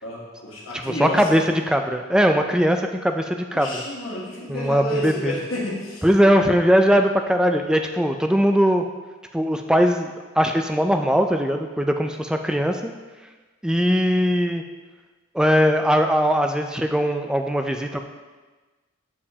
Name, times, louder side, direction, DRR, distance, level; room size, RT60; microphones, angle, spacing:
voice 1, 0.0-1.3 3.5-6.0, left 1 dB, 75° left, -4 dB, 1.6 m, -30 dB
voice 2, 0.8-3.8 4.5-5.3 6.0-8.8 9.3-12.9 13.6-14.6 15.3-18.0, equal, 5° right, 5 dB, 0.3 m, -20 dB
7.2 x 6.7 x 2.8 m, 1.3 s
head